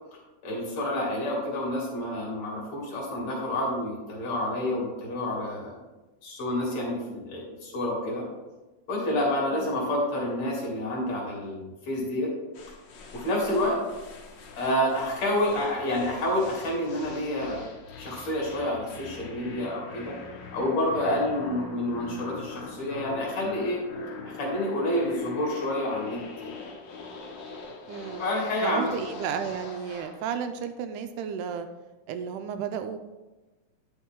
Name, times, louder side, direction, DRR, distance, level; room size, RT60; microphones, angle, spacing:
voice 1, 0.4-5.7 6.2-8.3 8.9-12.3 13.1-13.8 14.6-17.6 18.0-20.2 20.5-23.8 24.2-26.2 26.4-26.6 28.2-28.9, left 1 dB, 55° left, -3 dB, 3.6 m, -28 dB
voice 2, 9.5-9.9 27.9-28.3 28.6-31.7 32.1-33.0, right 7 dB, 80° right, 8 dB, 2.0 m, -33 dB
sound 1, 12.5-30.2, left 4 dB, 80° left, 1.0 m, -43 dB
10.5 x 6.1 x 3.7 m, 1.1 s
omnidirectional pair, 3.7 m